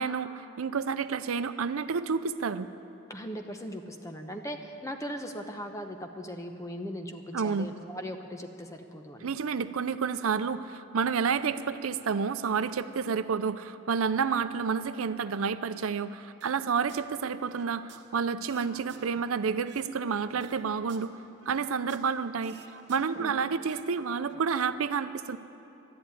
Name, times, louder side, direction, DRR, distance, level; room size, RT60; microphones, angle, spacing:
voice 1, 0.0-2.7 7.3-7.7 9.2-21.1 21.5-22.6 22.9-25.4, right 6 dB, 85° right, 12 dB, 0.5 m, -30 dB
voice 2, 3.1-9.3 23.1-23.3, equal, 15° left, 5 dB, 0.8 m, -39 dB
sound 1, 16.4-17.1 17.4-19.9 20.3-22.2 22.4-23.9 24.2-24.4, right 5 dB, 55° right, 0.9 m, -53 dB
12.0 x 11.0 x 9.1 m, 2.9 s
head